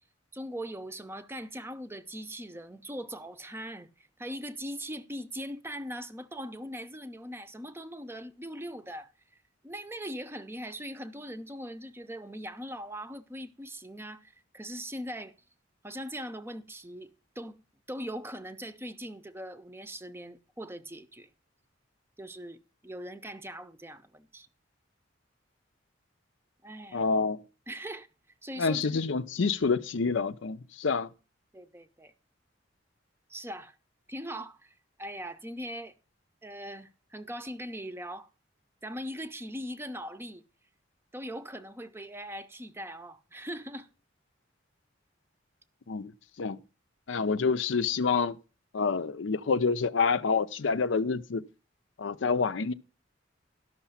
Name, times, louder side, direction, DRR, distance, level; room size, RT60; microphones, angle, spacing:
voice 1, 0.3-9.1 9.6-15.3 15.8-17.6 17.9-21.3 22.2-24.5 26.6-27.0 27.7-28.1 28.4-29.0 31.5-32.1 33.3-33.8 34.1-35.9 36.4-38.3 38.8-40.4 41.1-43.9, equal, 15° right, 0.6 m, -40 dB
voice 2, 26.9-27.4 28.6-31.1 45.9-46.1 46.4-46.6 47.1-48.4 48.7-51.4 52.0-52.7, left 5 dB, 80° left, 0.6 m, -27 dB
12.5 x 5.9 x 5.6 m
head